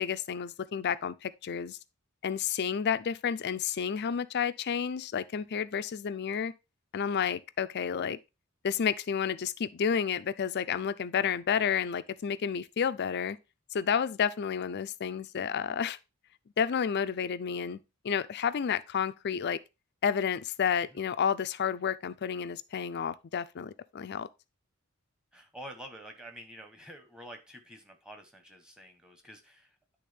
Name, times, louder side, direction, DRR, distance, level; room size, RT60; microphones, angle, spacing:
voice 1, 0.0-1.8 2.2-6.5 6.9-8.2 8.6-13.4 13.7-16.0 16.6-17.8 18.0-19.6 20.0-24.3, left 7 dB, 50° left, 0.4 m, -30 dB
voice 2, 25.3-29.8, equal, 5° right, 1.1 m, -48 dB
10.0 x 3.5 x 3.4 m
head